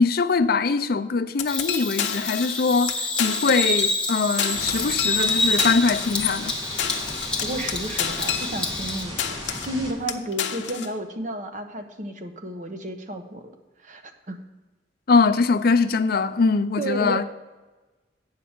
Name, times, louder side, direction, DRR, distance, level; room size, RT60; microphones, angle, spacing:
voice 1, 0.0-6.5 15.1-17.2, left 4 dB, 60° left, 0.5 m, -22 dB
sound 1, 1.4-2.6 2.9-3.0 3.2-4.1 4.4-8.9 9.2-9.8 10.1-10.9, left 8 dB, 90° left, 0.8 m, -29 dB
Bird vocalization bird call bird song, 1.5-9.0, left 2 dB, 5° left, 1.1 m, -27 dB
sound 2, 4.5-9.9, equal, 20° right, 1.8 m, -36 dB
voice 2, 7.2-9.2 9.7-13.5 13.8-14.0 14.3-14.4 16.8-17.2, right 1 dB, 45° right, 0.9 m, -32 dB
8.5 x 4.7 x 7.2 m
head